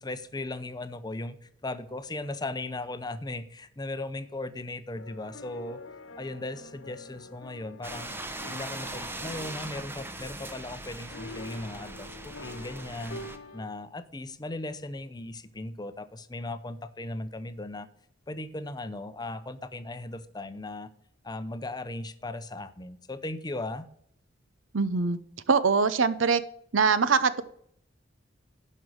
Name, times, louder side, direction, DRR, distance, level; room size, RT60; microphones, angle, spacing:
voice 1, 0.0-5.8 6.2-8.1 8.5-13.2 13.5-17.9 18.3-20.9 21.2-23.9, left 2 dB, 20° left, 12 dB, 0.6 m, -37 dB
sound 1, 4.9-13.7, left 2 dB, 85° left, 1.3 m, -46 dB
sound 2, 7.8-13.4, right 2 dB, 10° right, 0.8 m, -40 dB
voice 2, 24.7-25.2 25.5-26.4 26.7-27.4, right 5 dB, 75° right, 14 dB, 0.7 m, -23 dB
11.0 x 5.4 x 6.3 m, 0.68 s
head